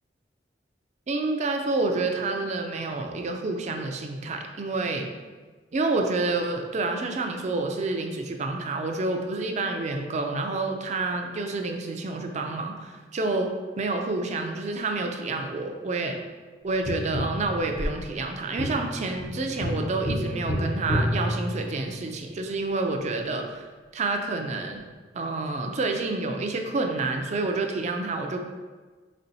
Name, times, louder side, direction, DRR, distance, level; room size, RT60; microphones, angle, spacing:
voice 1, 1.1-5.1 5.7-13.5 13.8-16.2 16.6-23.6 23.9-24.8 25.1-28.4, right 3 dB, 40° right, 4 dB, 0.4 m, -28 dB
Tap, 16.9-22.1 24.7-24.8, equal, 35° left, 0.7 m, -30 dB
4.3 x 4.2 x 2.7 m, 1.4 s
head